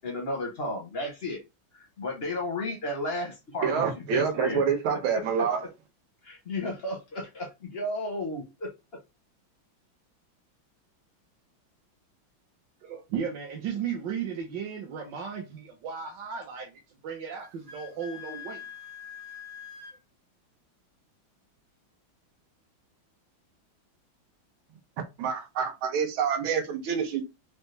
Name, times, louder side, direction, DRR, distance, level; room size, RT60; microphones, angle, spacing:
voice 1, 0.0-1.4 1.7-4.6 4.9-5.5 6.2-8.7, left 1 dB, 55° left, 0.6 m, -33 dB
voice 2, 3.6-5.6 25.2-27.2, right 7 dB, 80° right, 1.7 m, -27 dB
voice 3, 12.8-18.6, right 7 dB, 65° right, 1.3 m, -35 dB
Wind instrument woodwind instrument, 17.4-20.0, left 8 dB, 50° right, 1.0 m, -44 dB
5.0 x 2.2 x 3.2 m
omnidirectional pair, 2.2 m